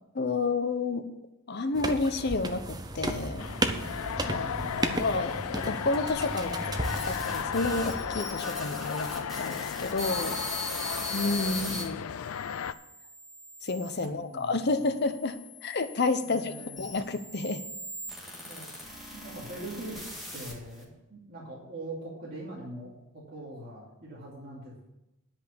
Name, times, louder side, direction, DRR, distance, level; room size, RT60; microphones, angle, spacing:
voice 1, 0.1-1.1 1.5-3.5 4.2-6.7 7.1-10.4 11.1-12.0 13.6-15.4 15.6-16.5 16.8-17.6, left 3 dB, 50° left, 10 dB, 0.7 m, -30 dB
sound 1, 1.7-8.2, right 2 dB, 20° right, 0.6 m, -34 dB
sound 2, 3.4-12.7, left 8 dB, 80° left, 0.4 m, -35 dB
voice 2, 4.2-5.0 11.7-12.1 13.9-14.6 16.2-17.0 18.4-18.7 19.1-20.0 20.3-24.9, right 1 dB, 45° right, -6 dB, 2.6 m, -43 dB
lobby blend, 6.2-11.8 12.5-14.0 14.8-20.8, left 1 dB, ahead, 2.1 m, -40 dB
10.0 x 5.4 x 8.4 m, 0.92 s
head